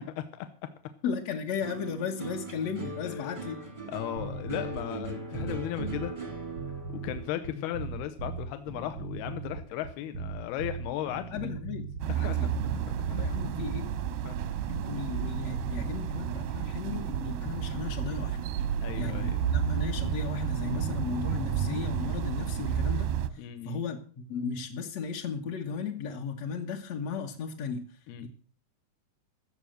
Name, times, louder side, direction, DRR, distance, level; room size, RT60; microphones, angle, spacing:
voice 1, 1.0-3.6 11.3-12.5 13.1-14.0 14.7-18.4 18.9-28.3, left 6 dB, 65° left, 0 dB, 1.8 m, -35 dB
sound 1, 1.6-10.1 10.4-11.0, right 2 dB, 25° right, 0.7 m, -41 dB
voice 2, 3.0-3.4 3.9-6.1 6.9-11.3 12.2-12.4 14.2-14.4 18.8-19.4 23.4-23.8 28.1-28.3, left 12 dB, 85° left, 9 dB, 2.8 m, -36 dB
sound 2, 4.2-13.8, right 4 dB, 70° right, 1.2 m, -39 dB
sound 3, 12.0-23.3, right 8 dB, 85° right, 3.0 m, -31 dB
15.5 x 7.2 x 7.7 m, 0.42 s
omnidirectional pair, 4.6 m